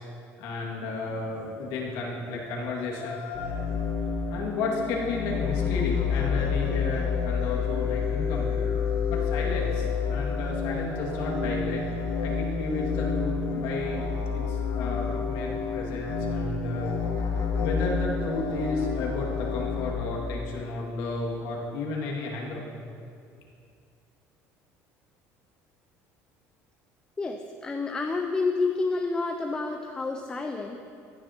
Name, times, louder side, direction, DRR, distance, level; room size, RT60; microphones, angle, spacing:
voice 1, 0.4-3.7 4.3-8.6 9.1-11.8 12.2-14.1 14.3-17.0 17.3-22.6, left 3 dB, 85° left, -2 dB, 2.2 m, -33 dB
sound 1, 3.3-19.9, left 5 dB, 65° left, 2.3 m, -29 dB
voice 2, 27.2-30.8, left 3 dB, 15° left, 4 dB, 0.5 m, -29 dB
15.5 x 10.5 x 2.9 m, 2.4 s
cardioid pair, 145°, 6 cm